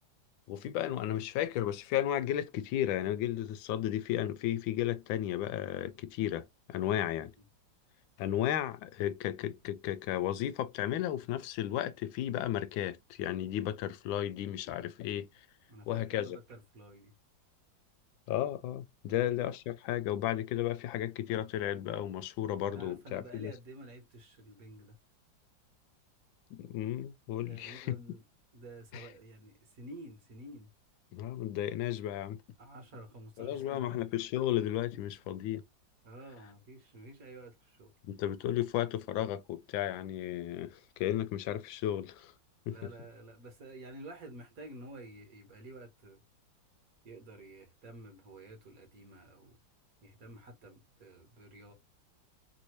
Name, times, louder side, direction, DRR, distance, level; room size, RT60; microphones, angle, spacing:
voice 1, 0.5-7.3 8.2-15.3 15.9-16.4 18.3-23.5 26.5-28.0 28.9-29.1 31.1-32.4 33.4-35.6 38.1-42.3 42.7-42.9, left 12 dB, 85° left, 1.3 m, -34 dB
voice 2, 15.7-17.1 19.0-19.3 22.7-24.9 27.5-28.2 28.5-30.7 32.6-34.0 36.0-37.9 42.7-46.2 47.0-49.6 50.0-51.7, right 1 dB, 55° right, 1.5 m, -50 dB
3.3 x 2.7 x 2.9 m
omnidirectional pair, 2.1 m